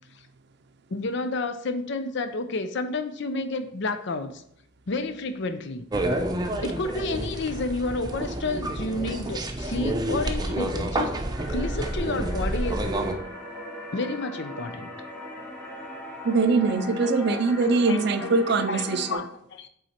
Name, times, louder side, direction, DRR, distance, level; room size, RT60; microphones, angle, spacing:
voice 1, 0.9-4.4 4.9-5.9 6.6-11.1 11.5-12.9 13.9-14.9 17.0-17.4 17.7-18.3 18.7-18.8 19.1-19.7, left 3 dB, 65° left, 9 dB, 0.6 m, -30 dB
sound 1, 5.9-13.1, right 1 dB, 20° right, 0.7 m, -29 dB
sound 2, 11.3-19.1, left 1 dB, 10° left, 2.8 m, -39 dB
voice 2, 16.2-19.2, right 4 dB, 60° right, 8 dB, 0.5 m, -22 dB
8.2 x 3.9 x 4.3 m, 0.71 s
head